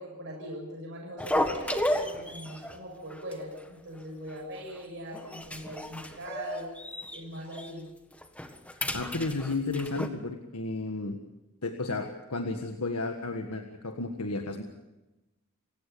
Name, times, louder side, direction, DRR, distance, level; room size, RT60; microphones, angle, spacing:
voice 1, 0.0-6.7 7.1-7.9, equal, 60° right, -1 dB, 6.9 m, -40 dB
sound 1, 1.2-2.8 3.1-3.3 3.6-3.7 4.3-4.8 5.1-7.2 7.5-7.7 8.1-10.1, left 1 dB, 5° left, 1.6 m, -33 dB
voice 2, 8.9-11.2 11.6-14.6, left 3 dB, 85° left, 4 dB, 1.7 m, -33 dB
29.0 x 17.0 x 7.0 m, 1.0 s
head